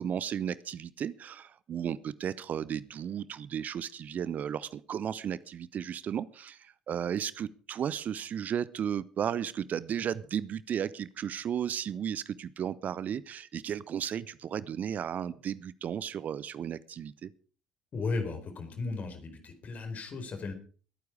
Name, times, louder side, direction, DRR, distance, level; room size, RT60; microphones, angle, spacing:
voice 1, 0.0-17.3, right 9 dB, 45° right, 18 dB, 0.7 m, -34 dB
voice 2, 17.9-20.5, left 3 dB, 45° left, 6 dB, 4.4 m, -35 dB
21.0 x 9.4 x 4.9 m, 0.41 s
figure-of-eight pair, 50°, 4 cm